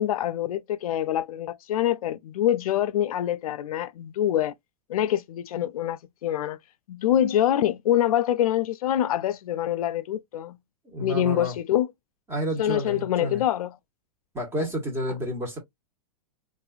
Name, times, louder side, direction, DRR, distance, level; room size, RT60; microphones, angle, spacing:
voice 1, 0.0-4.5 4.9-6.6 6.9-10.6 11.0-11.9 12.6-13.8, left 11 dB, 75° left, 0.4 m, -25 dB
voice 2, 10.8-11.5 12.3-13.4 14.3-15.6, equal, 15° right, 1.3 m, -30 dB
3.8 x 2.5 x 2.4 m
hypercardioid pair, 140°, 18 cm